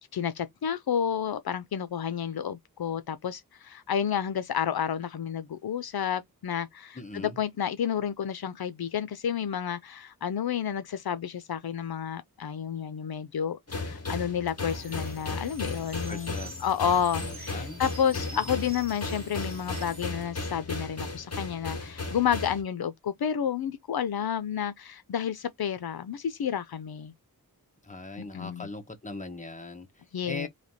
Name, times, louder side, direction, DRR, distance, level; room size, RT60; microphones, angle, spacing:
voice 1, 0.1-16.4 16.6-27.1 28.2-28.7 30.1-30.5, left 8 dB, 75° left, 0.6 m, -30 dB
voice 2, 6.9-7.4 16.1-16.9 17.2-17.8 18.1-18.5 27.8-30.5, left 2 dB, 20° left, 1.2 m, -41 dB
sound 1, 13.7-22.6, left 3 dB, 40° left, 1.7 m, -35 dB
sound 2, 14.7-20.1, right 2 dB, 25° right, 1.6 m, -47 dB
3.3 x 2.8 x 4.1 m
wide cardioid pair, 75°, 37 cm